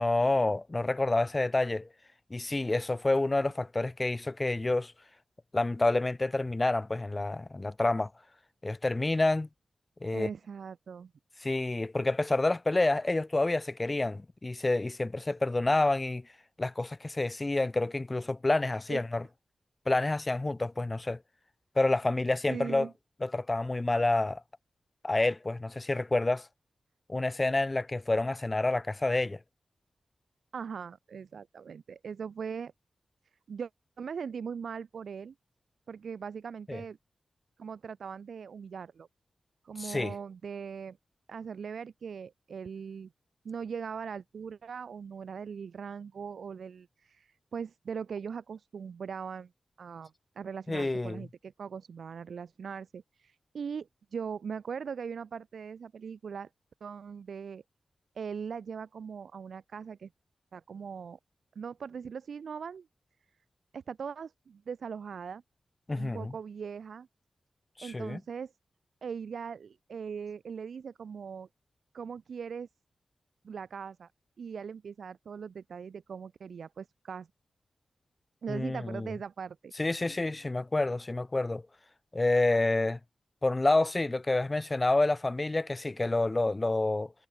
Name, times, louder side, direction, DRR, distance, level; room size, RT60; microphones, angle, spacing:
voice 1, 0.0-1.9 2.3-4.9 5.5-8.1 8.6-9.5 10.0-10.3 11.4-16.2 16.6-19.2 19.8-21.2 21.7-22.9 23.2-24.4 25.0-26.5 27.1-29.4 36.7-36.8 39.8-40.1 50.7-51.2 65.9-66.3 67.8-68.2 78.5-79.1 79.8-81.6 82.1-83.0 83.4-87.1, left 2 dB, 20° left, 1.6 m, -28 dB
voice 2, 10.1-11.1 18.9-19.0 22.5-22.9 30.5-32.7 33.5-33.7 34.0-35.3 35.9-37.0 37.6-39.1 39.6-41.0 41.3-43.1 43.4-49.5 49.8-56.5 56.8-57.6 58.1-60.1 60.5-61.2 61.5-62.9 63.7-65.4 66.0-67.1 67.8-68.5 69.0-71.5 71.9-72.7 73.4-74.1 74.4-77.3 78.4-79.7, right 6 dB, 75° right, 6.7 m, -40 dB
wide cardioid pair, 180°, 0 cm